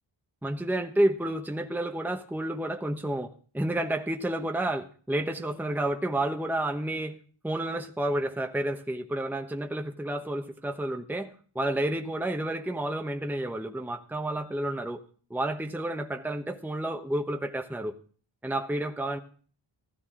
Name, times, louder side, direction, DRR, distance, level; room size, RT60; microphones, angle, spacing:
voice 1, 0.4-7.2 7.4-15.0 15.3-17.9 18.4-19.2, right 1 dB, 5° right, 4 dB, 1.0 m, -30 dB
16.0 x 12.5 x 3.7 m, 0.43 s
wide cardioid pair, 85°, 49 cm